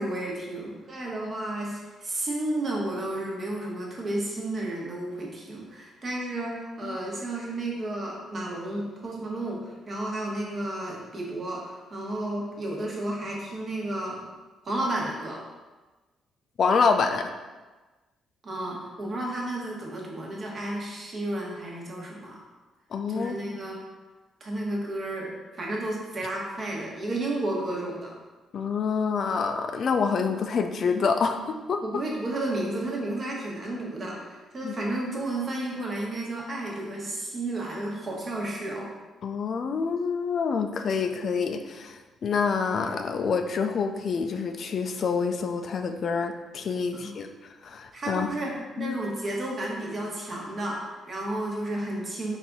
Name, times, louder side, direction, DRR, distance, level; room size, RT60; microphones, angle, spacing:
voice 1, 0.0-14.2 14.6-15.4 18.4-22.4 23.1-23.8 24.4-28.2 31.8-38.9 46.9-47.2 47.9-52.4, right 1 dB, 40° right, -2 dB, 1.1 m, -32 dB
voice 2, 16.6-17.3 22.9-23.6 28.5-31.8 34.6-34.7 39.2-47.3 47.6-48.3 48.8-49.0, left 5 dB, 55° left, 6 dB, 0.4 m, -27 dB
4.2 x 2.6 x 3.6 m, 1.2 s
cardioid pair, 90°, 0 cm